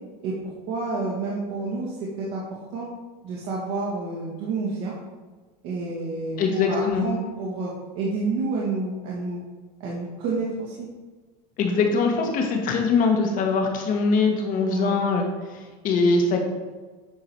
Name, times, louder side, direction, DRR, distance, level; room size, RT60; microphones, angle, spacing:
voice 1, 0.2-2.4 2.7-2.9 3.2-4.9 5.6-9.4 9.8-10.9 14.7-15.0, right 3 dB, 60° right, -6 dB, 1.8 m, -29 dB
voice 2, 6.4-7.1 11.6-16.4, left 4 dB, 40° left, 2 dB, 1.6 m, -22 dB
9.7 x 3.9 x 4.7 m, 1.4 s
supercardioid pair, 130°, 21 cm